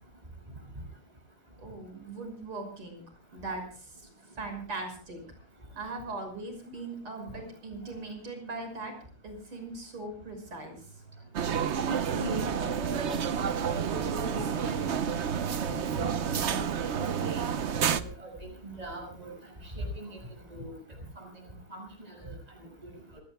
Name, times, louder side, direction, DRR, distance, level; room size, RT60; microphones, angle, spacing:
voice 1, 1.6-3.0 3.3-4.1 4.4-5.2 5.8-8.9 9.2-11.0, right 3 dB, 90° right, 5 dB, 7.1 m, -40 dB
sound 1, 11.3-18.0, right 7 dB, 70° right, 0.6 m, -30 dB
voice 2, 11.9-13.2 13.7-14.9 15.6-16.9 17.2-17.4 18.0-19.3 19.6-20.2 20.5-20.7 21.2-21.3 21.7-21.8 22.1-22.3 22.8-22.9, right 1 dB, 15° right, 2 dB, 6.4 m, -39 dB
26.5 x 18.0 x 2.2 m, 0.41 s
omnidirectional pair, 2.3 m